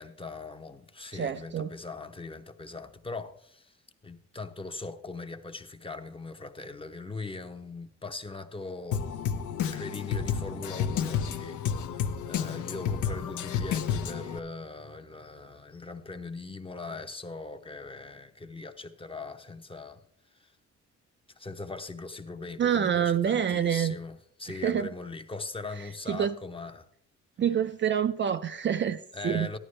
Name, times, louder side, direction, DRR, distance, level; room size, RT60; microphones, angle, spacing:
voice 1, 0.0-3.8 4.0-9.1 9.6-20.0 20.3-20.5 21.4-26.9 29.1-29.6, left 3 dB, 20° left, 0.8 m, -40 dB
voice 2, 1.1-1.7 22.6-24.0 24.5-24.9 26.1-26.3 27.4-29.6, right 8 dB, 40° right, 0.4 m, -27 dB
Drum kit, 8.9-14.4, left 8 dB, 80° left, 0.8 m, -31 dB
13.5 x 11.0 x 3.2 m
cardioid pair, 90°, 30 cm